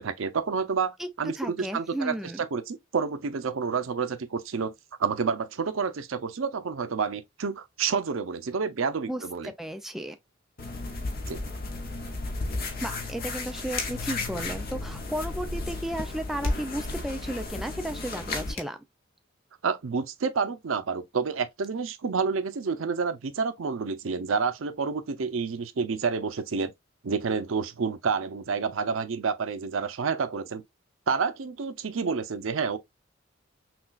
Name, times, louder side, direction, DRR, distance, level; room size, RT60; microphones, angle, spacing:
voice 1, 0.0-4.7 5.0-9.5 11.3-11.4 19.6-26.7 27.0-30.6 31.1-32.8, right 5 dB, 90° right, 0.6 m, -29 dB
voice 2, 1.4-2.4 9.1-10.2 12.8-18.8, right 1 dB, ahead, 0.5 m, -34 dB
sound 1, 10.6-18.5, left 2 dB, 50° left, 0.8 m, -33 dB
sound 2, 13.7-14.1 16.4-16.7 18.2-18.3 18.5-18.8, left 5 dB, 85° left, 1.4 m, -37 dB
5.9 x 2.3 x 2.4 m
head